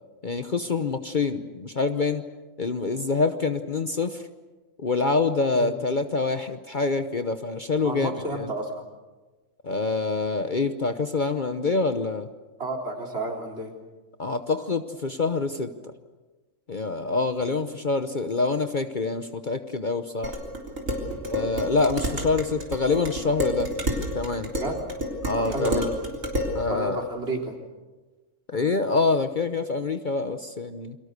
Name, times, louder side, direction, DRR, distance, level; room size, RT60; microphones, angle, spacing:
voice 1, 0.2-2.2 2.6-4.2 4.8-8.2 9.6-12.3 14.2-15.7 16.7-20.4 21.3-23.7 24.1-24.5 25.2-25.9 26.5-27.0 28.5-31.0, left 3 dB, 40° left, 8 dB, 1.0 m, -26 dB
voice 2, 7.8-8.9 12.6-13.7 17.4-17.5 21.0-21.2 24.5-24.8 25.3-25.9 26.7-27.6, right 1 dB, 50° right, 1 dB, 3.9 m, -31 dB
Dishes pots and pans, 20.2-26.6, equal, 75° right, 4.2 m, -30 dB
29.0 x 23.5 x 6.8 m, 1.2 s
omnidirectional pair, 1.4 m